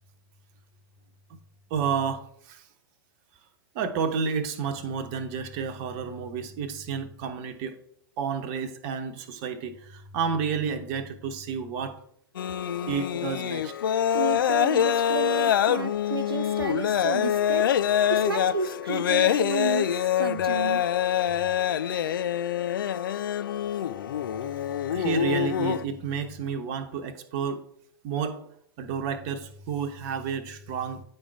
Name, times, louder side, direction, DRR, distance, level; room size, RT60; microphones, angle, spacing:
voice 1, 1.7-2.6 3.7-7.8 8.2-12.0 12.9-13.7 24.6-27.6 28.0-28.5 28.8-31.0, right 6 dB, 40° right, 8 dB, 1.0 m, -31 dB
sound 1, 12.3-25.8, left 10 dB, 65° left, 0.4 m, -25 dB
voice 2, 14.1-17.7 18.1-19.9 20.2-20.8, right 4 dB, 85° right, 7 dB, 0.5 m, -31 dB
9.4 x 3.8 x 4.7 m, 0.64 s
figure-of-eight pair, 100°, 12 cm